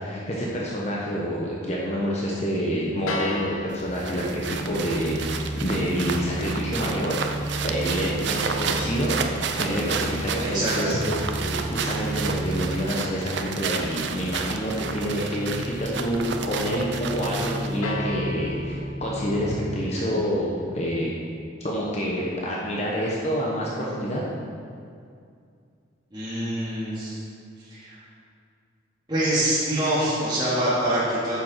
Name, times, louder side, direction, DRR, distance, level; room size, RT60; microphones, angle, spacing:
voice 1, 0.0-7.2 7.6-9.2 9.6-21.2 21.6-24.2, equal, 30° left, -4 dB, 1.0 m, -27 dB
sound 1, 3.1-9.2 17.8-19.8, left 1 dB, 80° left, 0.8 m, -39 dB
sound 2, 3.1-19.6, right 1 dB, 5° left, 1.9 m, -34 dB
sound 3, 3.7-17.8, right 6 dB, 55° right, 0.6 m, -32 dB
voice 2, 10.4-10.9 26.1-27.2 27.7-28.0 29.1-31.4, right 1 dB, 20° right, -11 dB, 2.5 m, -25 dB
9.8 x 6.9 x 4.6 m, 2.3 s
head